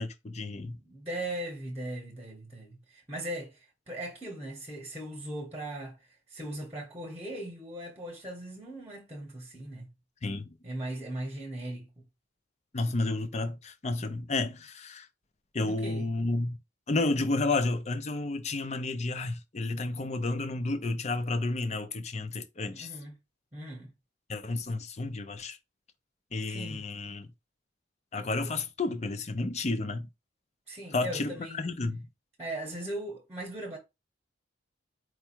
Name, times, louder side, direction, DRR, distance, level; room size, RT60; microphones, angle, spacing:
voice 1, 0.0-0.8 10.2-10.5 12.7-15.1 15.5-16.6 16.9-22.9 24.3-25.6 26.3-27.3 28.1-30.1 30.9-32.1, left 2 dB, 35° left, 0.5 m, -31 dB
voice 2, 0.6-6.0 6.3-9.9 10.6-12.0 15.6-16.1 22.7-23.2 23.5-23.9 26.5-26.9 30.7-31.6 32.4-33.8, right 1 dB, 10° right, 1.0 m, -39 dB
4.6 x 2.2 x 4.4 m
head